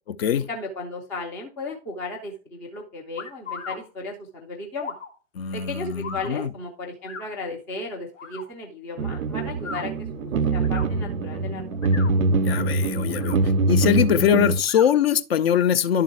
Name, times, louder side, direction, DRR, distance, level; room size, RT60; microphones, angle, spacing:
voice 1, 0.3-4.9 5.5-12.0, left 2 dB, 5° left, 0.4 m, -35 dB
sound 1, 3.2-3.8 4.8-5.1 6.0-6.3 7.0-7.3 8.1-8.4 9.5-9.8 10.6-10.9 11.7-12.1 13.0-13.4 14.6-14.9, left 5 dB, 65° left, 2.1 m, -36 dB
voice 2, 5.4-6.5 12.4-13.4 13.7-16.0, left 8 dB, 50° left, 0.6 m, -22 dB
sound 2, 9.0-14.6, right 2 dB, 80° right, 0.6 m, -23 dB
11.0 x 3.7 x 4.4 m
figure-of-eight pair, 105°, 40 cm